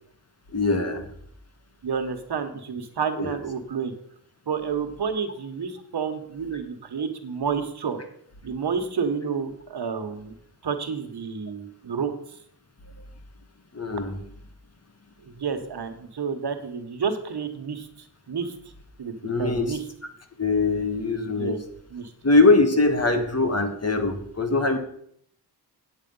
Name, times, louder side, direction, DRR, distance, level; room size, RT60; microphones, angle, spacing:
voice 1, 0.5-1.0 3.2-3.3 13.7-14.2 19.2-19.8 20.4-21.6 22.2-24.8, left 3 dB, 40° left, 7 dB, 1.5 m, -22 dB
voice 2, 1.8-3.9 4.5-8.0 8.4-10.3 10.6-12.1 15.3-18.5 19.0-19.1 19.4-19.8 21.3-21.6 21.9-22.1 23.1-23.2, right 6 dB, 75° right, 7 dB, 1.3 m, -30 dB
8.7 x 8.1 x 5.4 m, 0.67 s
wide cardioid pair, 100°, 40 cm